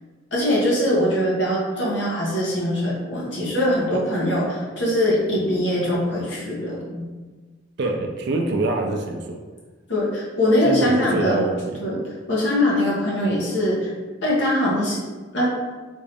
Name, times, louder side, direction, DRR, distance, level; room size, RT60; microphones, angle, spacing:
voice 1, 0.3-7.1 9.9-11.4 11.8-13.9 14.2-15.0 15.3-15.5, left 1 dB, 60° left, -5 dB, 1.0 m, -22 dB
voice 2, 7.8-9.4 10.6-11.8, right 2 dB, 55° right, 2 dB, 0.4 m, -25 dB
3.5 x 2.6 x 3.3 m, 1.4 s
head